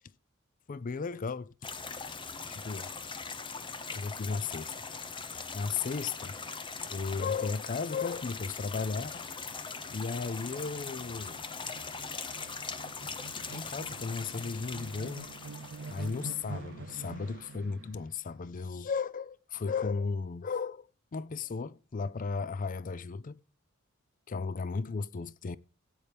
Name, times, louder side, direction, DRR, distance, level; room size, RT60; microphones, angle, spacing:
voice 1, 0.7-1.5 2.5-2.9 3.9-4.7 5.5-6.3 6.9-9.3 9.9-11.4 13.1-13.2 13.5-15.3 15.9-23.4 24.3-25.6, left 5 dB, 40° left, 0.4 m, -35 dB
sound 1, 1.6-16.4, left 4 dB, 25° left, 0.9 m, -41 dB
sound 2, 9.4-18.0, right 4 dB, 60° right, 0.6 m, -47 dB
15.0 x 8.7 x 3.4 m
head